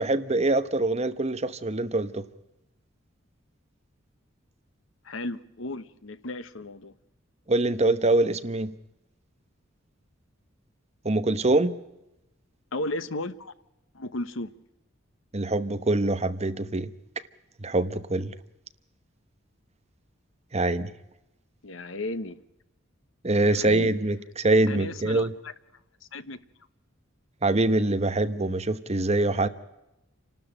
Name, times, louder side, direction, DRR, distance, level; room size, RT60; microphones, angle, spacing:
voice 1, 0.0-2.2 7.5-8.7 11.0-11.8 15.3-16.9 17.6-18.3 20.5-20.9 23.2-25.3 27.4-29.5, right 2 dB, 35° right, 1.0 m, -24 dB
voice 2, 5.0-6.9 12.7-13.5 13.9-14.5 21.6-22.4 23.4-23.9 24.7-25.5 26.1-26.4, left 2 dB, 80° left, 1.1 m, -34 dB
28.0 x 12.5 x 9.0 m
head